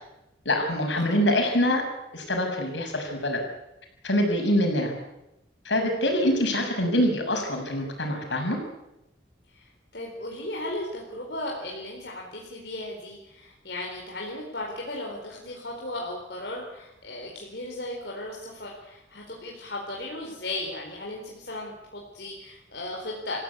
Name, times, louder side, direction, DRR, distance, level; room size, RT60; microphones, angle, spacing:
voice 1, 0.4-1.8 2.1-3.4 4.0-4.9 5.6-8.6, left 1 dB, 80° left, 3 dB, 6.6 m, -24 dB
voice 2, 9.9-23.4, left 1 dB, 65° left, -2 dB, 4.3 m, -36 dB
28.0 x 16.0 x 8.3 m, 0.88 s
head